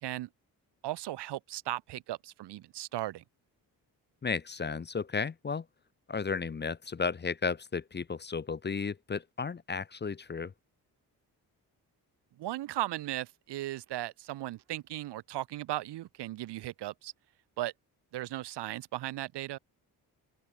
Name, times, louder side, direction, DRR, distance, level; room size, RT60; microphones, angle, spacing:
voice 1, 0.8-3.2 12.3-17.1 17.6-17.7 18.1-19.6, right 15 dB, 75° right, 0.8 m, -37 dB
voice 2, 4.2-5.7 6.1-10.5, left 5 dB, 25° left, 0.6 m, -34 dB
open air
supercardioid pair, 55°, 41 cm